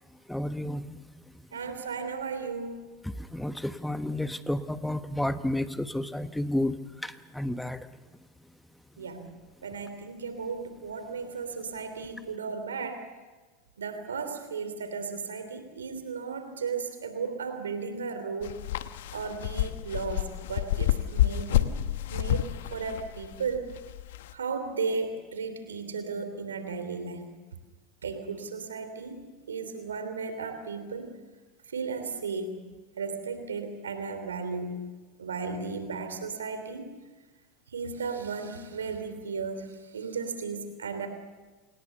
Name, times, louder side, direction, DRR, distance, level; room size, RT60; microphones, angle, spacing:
voice 1, 0.3-1.0 3.0-7.9, left 1 dB, 5° left, 11 dB, 1.2 m, -31 dB
voice 2, 1.5-2.9 9.0-9.3 9.6-13.1 13.8-18.6 19.1-21.7 22.1-23.7 24.3-27.3 28.0-31.1 31.7-32.6 33.0-34.9 35.2-36.9 37.7-41.1, right 5 dB, 90° right, 8 dB, 3.0 m, -35 dB
sound 1, 18.4-24.3, left 13 dB, 75° left, 1.0 m, -29 dB
27.5 x 19.5 x 6.9 m, 1.2 s
hypercardioid pair, 90°, 0 cm